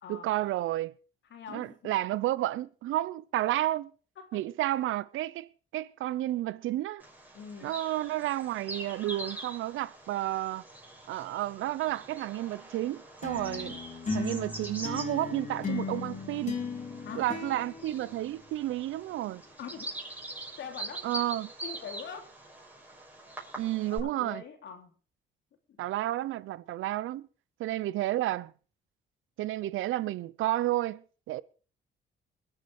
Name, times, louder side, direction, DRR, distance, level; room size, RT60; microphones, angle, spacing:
voice 1, 0.1-0.9 1.5-3.9 4.3-7.0 7.6-10.6 11.1-13.8 14.1-16.6 17.1-19.4 21.0-21.5 23.6-24.4 25.8-27.3 27.6-28.5 29.4-31.4, right 14 dB, 85° right, 0.8 m, -31 dB
voice 2, 1.3-1.9 4.2-4.4 7.3-7.7 17.0-17.3 19.6-19.9 20.6-21.1 21.6-22.4 24.0-24.9 25.7-25.8, left 7 dB, 70° left, 3.2 m, -43 dB
Bird vocalization bird call bird song, 7.0-24.0, right 1 dB, 10° right, 6.3 m, -44 dB
sound 1, 13.2-18.8, left 4 dB, 35° left, 3.8 m, -37 dB
22.0 x 8.1 x 4.9 m
cardioid pair, 90°, 20 cm